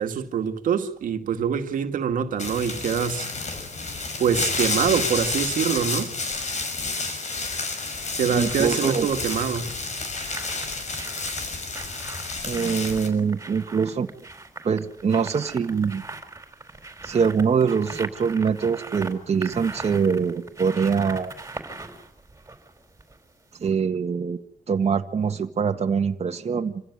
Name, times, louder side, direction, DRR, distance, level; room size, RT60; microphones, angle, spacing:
voice 1, 0.0-3.3 4.2-6.1 8.2-9.7, right 7 dB, 85° right, 2.1 m, -25 dB
sound 1, 2.4-13.1, left 3 dB, 60° left, 6.0 m, -30 dB
sound 2, 6.1-6.5 7.8-23.3 23.6-23.7, right 3 dB, 20° right, 4.5 m, -41 dB
voice 2, 8.3-9.1 12.5-14.1 14.6-16.0 17.0-21.3 23.6-24.4 24.7-26.8, right 6 dB, 50° right, 1.8 m, -24 dB
27.0 x 16.0 x 9.9 m
cardioid pair, 90°, 14 cm